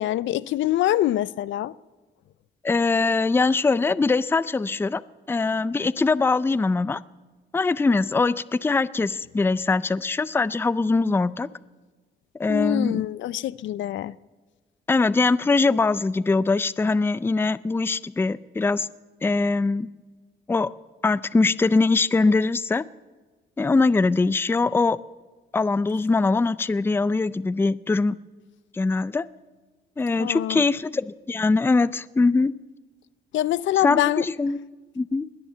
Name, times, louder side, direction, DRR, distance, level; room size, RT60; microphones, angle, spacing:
voice 1, 0.0-1.7 12.5-14.1 30.2-30.6 33.3-34.2, left 13 dB, 70° left, 0.4 m, -24 dB
voice 2, 2.6-5.0 5.3-7.0 7.5-11.5 12.4-13.0 14.9-18.9 19.2-19.9 20.5-20.7 21.0-22.8 23.6-25.0 25.5-28.2 28.7-29.3 30.0-32.5 33.8-34.6 35.0-35.3, left 3 dB, 10° left, 0.4 m, -22 dB
21.0 x 7.2 x 9.0 m
cardioid pair, 90°, 20 cm